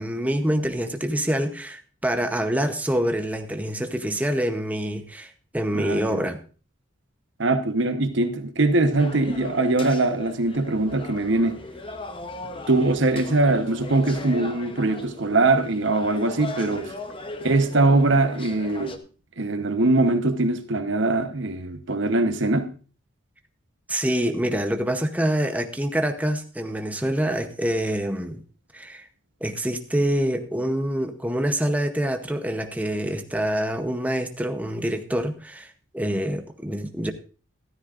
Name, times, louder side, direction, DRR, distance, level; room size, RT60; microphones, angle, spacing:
voice 1, 0.0-6.4 23.9-28.4 28.7-29.1 29.4-37.1, equal, 5° right, 0.7 m, -26 dB
voice 2, 5.7-6.2 7.4-11.6 12.7-16.9 17.4-19.0 19.4-22.7, right 2 dB, 65° right, 1.0 m, -22 dB
sound 1, 9.0-19.0, left 2 dB, 25° left, 0.8 m, -38 dB
13.5 x 13.0 x 2.5 m
head